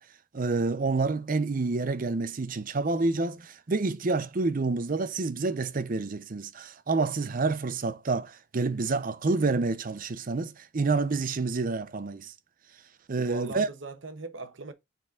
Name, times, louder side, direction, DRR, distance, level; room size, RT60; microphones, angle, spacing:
voice 1, 0.3-12.3 13.1-13.7, right 3 dB, 45° right, 0.6 m, -28 dB
voice 2, 13.2-14.7, right 3 dB, 75° right, 1.0 m, -39 dB
6.2 x 4.2 x 3.7 m
head